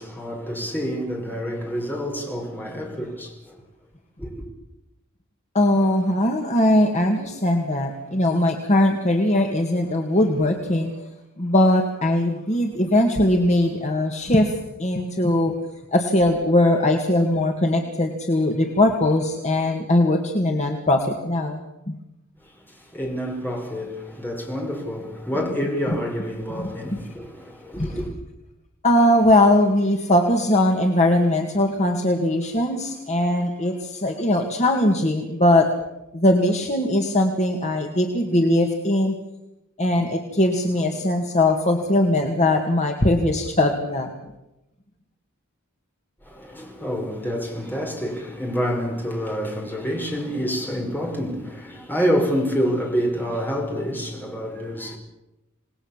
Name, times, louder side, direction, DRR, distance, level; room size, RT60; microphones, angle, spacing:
voice 1, 0.0-3.6 4.2-4.3 22.4-28.1 46.2-55.0, equal, 10° left, 5.4 m, -27 dB
voice 2, 5.5-11.1 11.4-15.5 15.9-21.9 26.5-27.0 27.8-27.9 28.8-35.7 36.1-39.2 39.8-44.1, left 1 dB, 35° left, 1.9 m, -20 dB
27.5 x 19.5 x 7.4 m
head